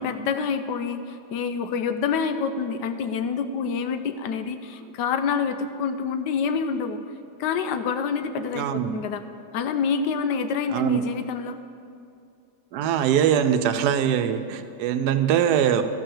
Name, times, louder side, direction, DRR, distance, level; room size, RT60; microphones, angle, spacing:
voice 1, 0.0-7.0 7.4-9.2 9.5-11.6, left 6 dB, 85° left, 9 dB, 1.3 m, -27 dB
voice 2, 8.5-9.0 10.7-11.0 12.7-15.8, right 9 dB, 80° right, 9 dB, 1.1 m, -22 dB
12.5 x 5.6 x 7.1 m, 2.5 s
omnidirectional pair, 1.8 m